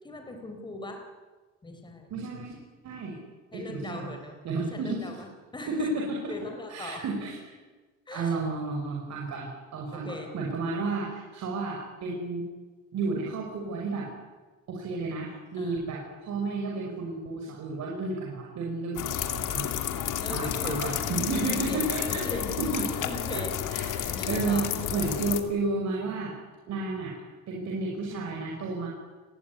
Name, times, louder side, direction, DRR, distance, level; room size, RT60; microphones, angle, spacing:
voice 1, 0.0-1.1 1.6-2.1 3.5-7.0 8.1-8.4 9.9-10.3 15.6-15.9 20.2-21.0 21.3-22.6 23.0-23.6 24.2-24.7, left 2 dB, 15° left, 4 dB, 3.9 m, -39 dB
voice 2, 2.1-2.6 2.8-3.2 3.5-4.1 4.4-5.0 5.7-6.2 6.7-7.3 8.1-12.4 12.9-14.1 14.7-20.0 20.3-22.2 22.6-22.9 23.3-23.4 23.7-26.3 26.7-27.1 27.5-28.9, right 3 dB, 60° right, -1 dB, 6.0 m, -32 dB
sound 1, 19.0-25.4, left 10 dB, 75° left, 2.6 m, -31 dB
29.5 x 20.5 x 9.8 m, 1.3 s
cardioid pair, 165°, 32 cm